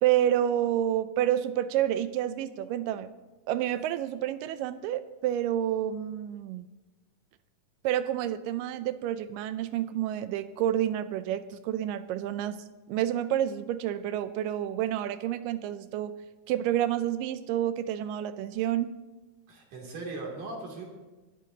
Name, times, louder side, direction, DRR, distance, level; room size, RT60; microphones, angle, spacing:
voice 1, 0.0-3.1 3.5-6.7 7.8-16.1 16.5-18.9, right 11 dB, 85° right, 12 dB, 2.2 m, -29 dB
voice 2, 19.5-20.9, right 3 dB, 70° right, -1 dB, 4.3 m, -38 dB
24.0 x 13.0 x 2.8 m, 1.2 s
omnidirectional pair, 3.8 m